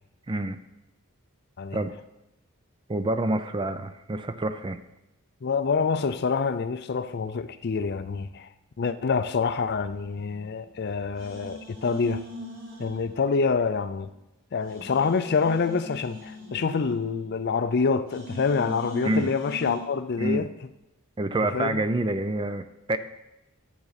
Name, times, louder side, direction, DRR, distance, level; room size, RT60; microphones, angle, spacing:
voice 1, 0.3-0.6 1.7-1.9 2.9-4.8 19.0-19.3 20.2-20.5 21.2-23.0, right 2 dB, 20° right, 0.4 m, -27 dB
voice 2, 5.4-8.5 8.8-12.2 12.8-14.1 14.5-20.5 21.5-21.8, left 5 dB, 50° left, 0.4 m, -26 dB
sound 1, 10.1-10.8 11.1-13.7 14.1-14.2 14.6-17.7 18.1-19.8, equal, 60° right, 4.0 m, -41 dB
11.5 x 8.2 x 4.1 m
head